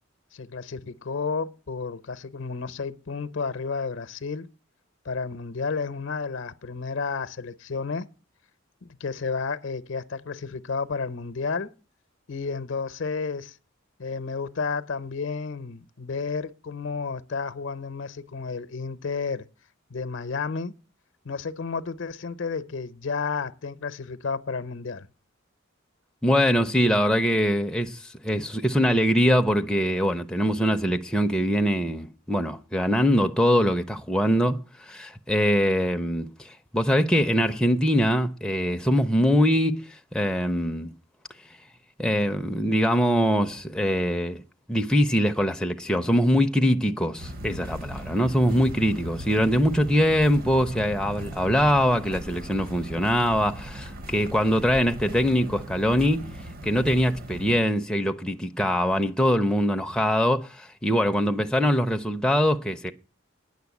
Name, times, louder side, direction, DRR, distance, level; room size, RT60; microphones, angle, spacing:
voice 1, 0.3-4.5 5.0-8.1 8.8-11.7 12.3-13.6 14.0-19.5 19.9-20.7 21.2-25.1, left 4 dB, 65° left, 0.7 m, -31 dB
voice 2, 26.2-40.9 42.0-44.4 44.7-62.9, equal, 5° left, 0.5 m, -23 dB
sound 1, 47.2-57.6, right 1 dB, 45° right, 0.9 m, -38 dB
9.6 x 6.6 x 8.2 m
head